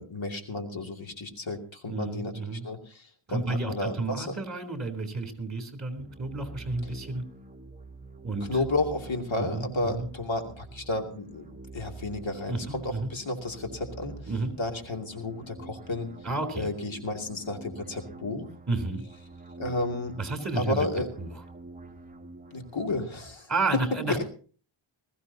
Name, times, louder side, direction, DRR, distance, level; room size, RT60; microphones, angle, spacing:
voice 1, 0.0-4.4 8.5-11.5 11.7-14.2 14.6-16.1 16.5-18.5 19.6-20.1 20.6-21.1 22.5-23.5 24.1-24.2, left 2 dB, 65° left, 3 dB, 2.7 m, -32 dB
voice 2, 1.9-2.7 3.3-7.2 8.2-8.6 9.4-10.1 12.5-13.1 14.3-14.5 16.2-16.7 18.7-19.0 20.2-20.9 21.2-21.3 23.5-24.2, right 3 dB, 35° right, 6 dB, 3.6 m, -31 dB
sound 1, 6.0-23.0, right 3 dB, 15° right, 1.5 m, -47 dB
20.5 x 15.0 x 2.8 m, 0.39 s
wide cardioid pair, 95°, 49 cm